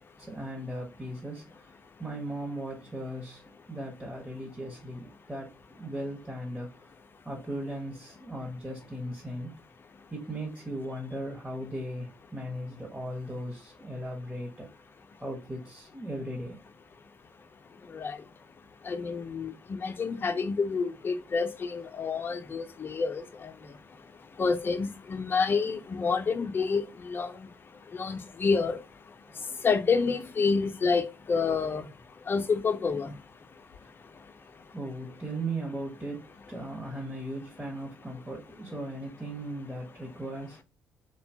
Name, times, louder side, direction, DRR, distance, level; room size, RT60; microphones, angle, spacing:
voice 1, 0.2-3.4 3.7-5.5 5.8-6.7 7.2-9.5 10.1-14.7 15.2-16.6 29.3-29.4 34.7-40.6, right 1 dB, 15° right, 0.9 m, -37 dB
voice 2, 18.9-19.5 19.8-23.2 24.4-27.3 27.9-28.8 29.6-31.8 32.3-33.1, left 5 dB, 35° left, 0.5 m, -28 dB
2.7 x 2.2 x 2.6 m
hypercardioid pair, 45°, 6 cm